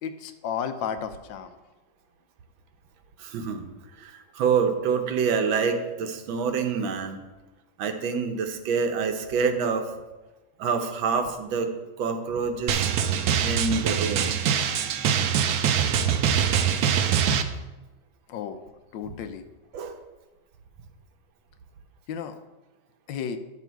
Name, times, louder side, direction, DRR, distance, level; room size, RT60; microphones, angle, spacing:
voice 1, 0.0-1.6 18.3-18.7 18.9-19.5 22.1-22.4 23.1-23.4, left 7 dB, 75° left, 9 dB, 1.3 m, -33 dB
voice 2, 3.2-3.6 4.0-7.2 7.8-9.9 10.6-11.7 12.0-12.9 13.4-14.4 19.7-20.0, right 5 dB, 85° right, 6 dB, 1.7 m, -26 dB
Drum, 12.7-17.4, right 8 dB, 65° right, 1.0 m, -23 dB
10.5 x 6.3 x 4.5 m, 1.1 s
omnidirectional pair, 2.1 m